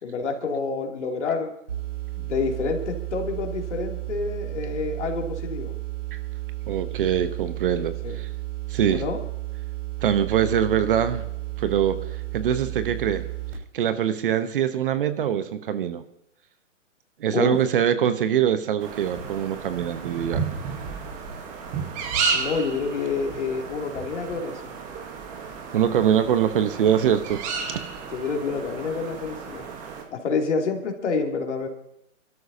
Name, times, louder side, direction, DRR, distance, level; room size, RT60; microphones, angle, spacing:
voice 1, 0.0-1.5 2.2-5.7 8.0-8.2 8.9-9.2 17.3-17.6 22.3-24.7 28.1-29.7 30.1-31.7, left 4 dB, 60° left, 2 dB, 2.8 m, -28 dB
sound 1, 1.7-13.5, right 18 dB, 70° right, 6.0 m, -33 dB
voice 2, 6.7-8.3 8.7-9.0 10.0-11.2 11.6-12.0 12.3-13.3 13.7-16.0 17.2-20.4 25.7-27.4 27.7-27.8, right 9 dB, 45° right, 11 dB, 1.0 m, -23 dB
sound 2, 18.8-30.0, right 5 dB, 20° right, 1.3 m, -32 dB
25.5 x 13.0 x 2.8 m, 0.78 s
hypercardioid pair, 145°, 39 cm